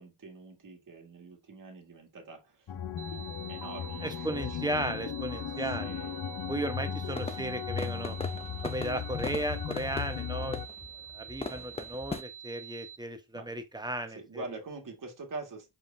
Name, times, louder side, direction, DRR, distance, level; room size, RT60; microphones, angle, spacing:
voice 1, 0.0-2.7 3.1-4.9 5.6-6.2 7.2-7.5 11.4-11.7 13.3-13.5 14.1-15.8, right 3 dB, 40° right, 1.8 m, -45 dB
sound 1, 2.7-10.7, left 8 dB, 50° left, 0.8 m, -37 dB
sound 2, 3.0-13.0, right 9 dB, 70° right, 1.1 m, -47 dB
voice 2, 4.0-5.9 6.5-8.2 8.6-10.6 11.1-14.4, right 1 dB, 10° right, 1.0 m, -35 dB
sound 3, 7.1-12.2, left 3 dB, 15° left, 0.4 m, -40 dB
4.9 x 3.8 x 2.6 m
cardioid pair, 65°, 49 cm